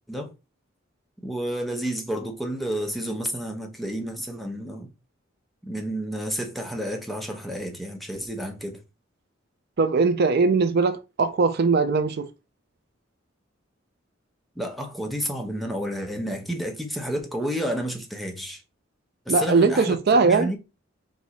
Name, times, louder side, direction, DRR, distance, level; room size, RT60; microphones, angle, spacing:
voice 1, 1.2-4.9 5.6-8.8 14.6-18.6 19.3-20.0 20.2-20.6, equal, ahead, 0.8 m, -30 dB
voice 2, 9.8-12.3 19.3-20.5, right 4 dB, 55° right, 0.5 m, -20 dB
4.7 x 2.7 x 4.0 m
head